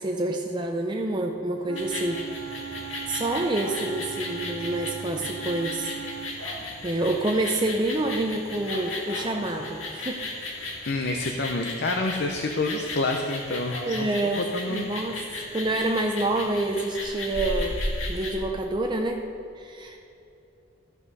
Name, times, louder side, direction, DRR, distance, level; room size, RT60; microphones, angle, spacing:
voice 1, 0.0-2.3 2.6-5.9 6.3-6.5 6.8-10.2 13.9-15.2 15.5-17.8 18.1-19.3 19.6-20.0, right 2 dB, 25° right, 2 dB, 0.6 m, -28 dB
Wind instrument woodwind instrument, 1.6-6.4, right 8 dB, 80° right, 0.6 m, -39 dB
sound 1, 1.8-18.4, left 2 dB, 90° left, 1.8 m, -35 dB
voice 2, 10.9-14.9, left 2 dB, 60° left, 3 dB, 0.7 m, -28 dB
14.0 x 6.1 x 5.4 m, 2.8 s
head